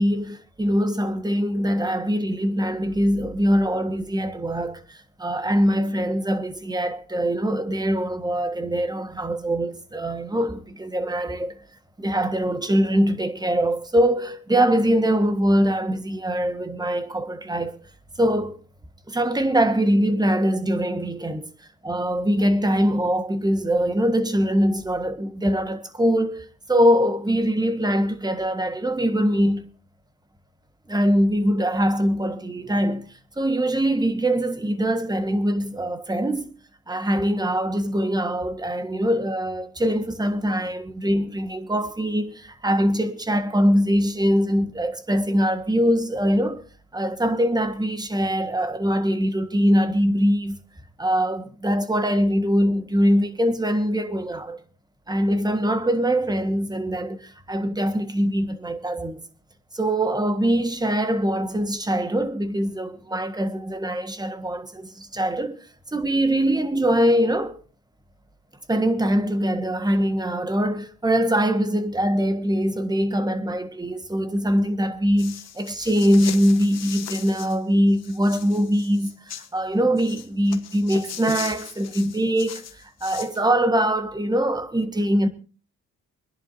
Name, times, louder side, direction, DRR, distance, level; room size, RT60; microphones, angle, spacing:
voice 1, 0.0-11.6 12.0-17.8 18.2-18.6 19.1-21.5 21.8-29.7 30.9-36.5 36.9-46.6 46.9-50.6 51.0-54.6 55.1-59.2 59.7-67.6 68.7-85.3, equal, 15° right, 1.5 m, -23 dB
sound 1, 75.2-77.6 77.9-79.5 80.0-83.4, left 9 dB, 60° left, 1.3 m, -38 dB
25.5 x 10.5 x 2.7 m
cardioid pair, 90°, 30 cm